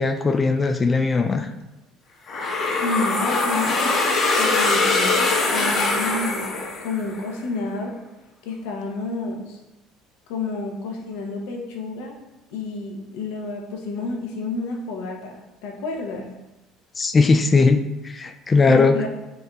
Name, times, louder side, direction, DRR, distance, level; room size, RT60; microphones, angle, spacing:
voice 1, 0.0-1.5 17.0-19.0, left 4 dB, 30° left, 7 dB, 0.3 m, -19 dB
sound 1, 2.3-7.2, left 3 dB, 50° left, 1.0 m, -22 dB
voice 2, 2.8-4.0 4.4-6.5 6.8-7.9 8.4-9.6 10.3-12.2 12.5-16.3 18.6-19.1, left 3 dB, 75° left, 1 dB, 0.8 m, -30 dB
5.3 x 3.7 x 2.3 m, 1.0 s
hypercardioid pair, 70°, 0 cm